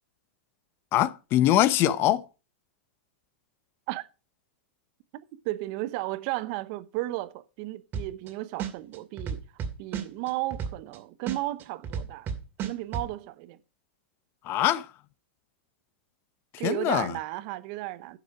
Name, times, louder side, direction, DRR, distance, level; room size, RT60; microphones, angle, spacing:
voice 1, 0.9-2.2 14.5-14.8 16.6-17.1, left 13 dB, 40° left, 0.8 m, -23 dB
voice 2, 5.4-9.4 9.8-12.3 12.6-13.6 16.6-18.2, right 17 dB, 50° right, 0.9 m, -34 dB
sound 1, 7.9-8.3 8.6-11.0 11.3-13.1, right 7 dB, 35° right, 2.3 m, -32 dB
10.5 x 7.1 x 4.8 m
hypercardioid pair, 110°, 6 cm